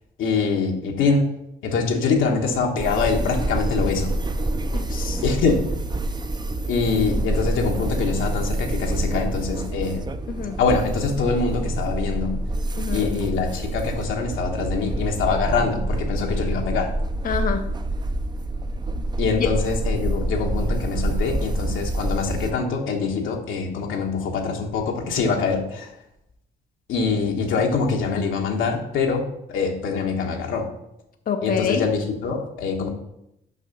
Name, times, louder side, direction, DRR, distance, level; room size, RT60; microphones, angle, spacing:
voice 1, 0.2-1.3 1.6-4.1 5.2-5.6 6.7-10.1 10.6-12.3 12.9-16.9 19.2-25.9 26.9-29.2 29.5-30.7 31.4-32.9, left 4 dB, 80° left, 2 dB, 1.4 m, -24 dB
sound 1, 2.8-22.5, right 2 dB, 20° right, 0.5 m, -27 dB
voice 2, 4.7-5.2 10.3-10.6 12.8-13.2 17.2-17.8 19.4-19.5 31.3-31.8, left 7 dB, 45° left, 6 dB, 0.6 m, -26 dB
6.4 x 5.6 x 5.3 m, 0.82 s
cardioid pair, 90°, 20 cm